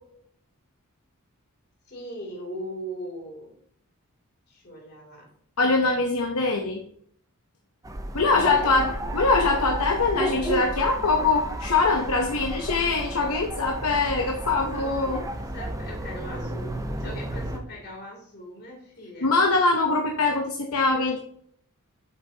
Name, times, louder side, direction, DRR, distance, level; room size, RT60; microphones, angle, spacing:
voice 1, 1.9-3.5 4.5-5.3 8.2-9.2 14.7-16.7 17.0-19.3, equal, 50° left, -1 dB, 2.9 m, -39 dB
voice 2, 5.6-6.8 8.1-15.2 19.2-21.2, left 3 dB, 80° left, 2 dB, 0.8 m, -23 dB
sound 1, 7.8-17.6, right 1 dB, 15° right, 0.7 m, -32 dB
7.7 x 5.9 x 2.8 m, 0.64 s
head